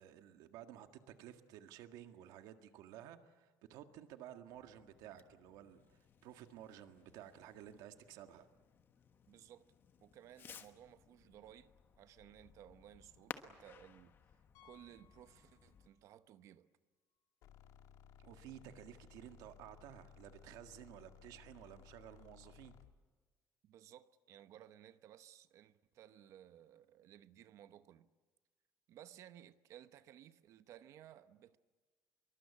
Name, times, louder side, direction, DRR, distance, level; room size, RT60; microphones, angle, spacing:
voice 1, 0.0-8.5 18.2-22.7, right 11 dB, 90° right, 1.8 m, -54 dB
Fireworks, 4.5-15.9, left 7 dB, 35° left, 1.3 m, -58 dB
voice 2, 9.3-9.7 10.0-14.2 14.6-16.7 23.6-28.1 28.9-31.6, right 11 dB, 55° right, 0.9 m, -58 dB
Piano, 14.5-16.1 16.4-16.6 17.2-17.3 17.5-17.6 19.7-19.8, left 11 dB, 90° left, 3.2 m, -68 dB
sound 1, 17.4-23.0, left 8 dB, 70° left, 1.9 m, -60 dB
25.5 x 23.0 x 8.5 m
cardioid pair, 165°, 6 cm